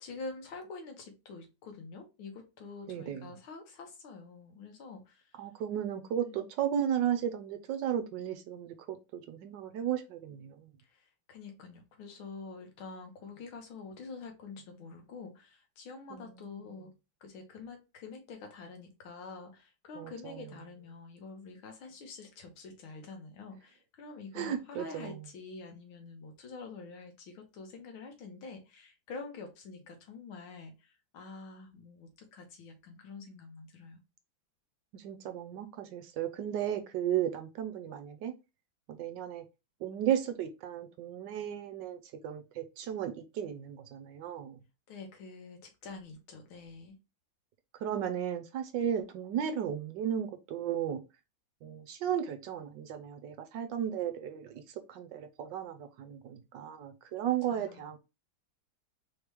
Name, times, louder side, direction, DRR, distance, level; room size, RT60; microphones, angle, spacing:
voice 1, 0.0-5.4 6.2-6.5 10.8-16.9 17.2-34.0 44.9-47.0 57.5-57.9, left 4 dB, 90° left, 1.9 m, -47 dB
voice 2, 2.9-3.3 5.4-10.7 16.1-16.5 20.0-20.5 24.3-25.2 34.9-38.3 38.9-39.4 39.8-44.6 47.8-51.0 51.6-58.0, right 9 dB, 70° right, 1.2 m, -35 dB
4.2 x 3.1 x 3.3 m
omnidirectional pair, 2.2 m